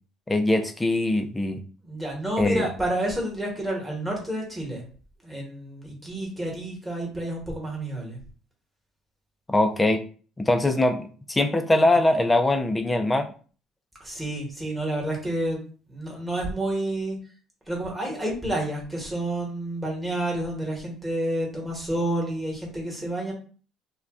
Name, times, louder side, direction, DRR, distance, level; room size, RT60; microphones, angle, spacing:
voice 1, 0.3-1.6 2.4-2.7 9.5-10.0 10.4-13.3, left 2 dB, 15° left, 7 dB, 0.4 m, -22 dB
voice 2, 1.8-4.8 5.2-8.2 14.0-15.6 15.9-17.2 17.7-23.3, right 1 dB, 10° right, -2 dB, 1.1 m, -29 dB
2.4 x 2.2 x 3.5 m, 0.40 s
cardioid pair, 125°, 0 cm